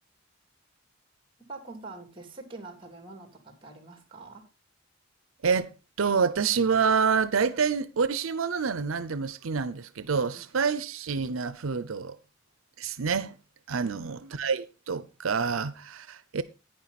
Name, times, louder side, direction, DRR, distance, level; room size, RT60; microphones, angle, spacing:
voice 1, 1.5-4.5 10.3-10.4 13.8-14.1, right 3 dB, 25° right, 2.9 m, -45 dB
voice 2, 6.0-12.2 12.8-13.4 13.7-16.4, right 5 dB, 90° right, 0.6 m, -27 dB
11.0 x 9.6 x 4.1 m
head